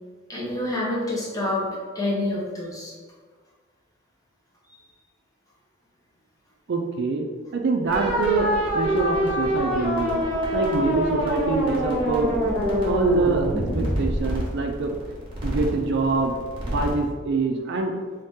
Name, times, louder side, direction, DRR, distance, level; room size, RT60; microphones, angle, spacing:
voice 1, 0.3-2.9, left 1 dB, 15° left, -5 dB, 0.8 m, -27 dB
voice 2, 6.7-7.3 7.5-10.2 10.5-12.4 12.8-13.5 13.7-14.9 15.4-16.3 16.6-17.9, right 3 dB, 60° right, 3 dB, 0.4 m, -25 dB
sound 1, 7.9-17.0, equal, 25° right, 1.1 m, -25 dB
3.1 x 2.8 x 3.5 m, 1.5 s
head